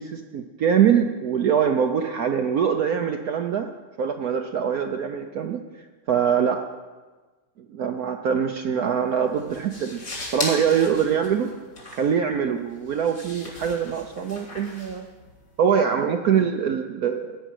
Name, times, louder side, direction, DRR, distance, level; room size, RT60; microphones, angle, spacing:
voice 1, 0.0-3.7 4.0-5.6 6.1-6.7 7.7-10.0 10.3-11.5 11.9-15.1 15.6-17.4, right 7 dB, 65° right, 5 dB, 1.0 m, -23 dB
sound 1, 8.8-15.7, left 2 dB, 55° left, 3.5 m, -38 dB
16.0 x 5.5 x 9.1 m, 1.3 s
omnidirectional pair, 2.0 m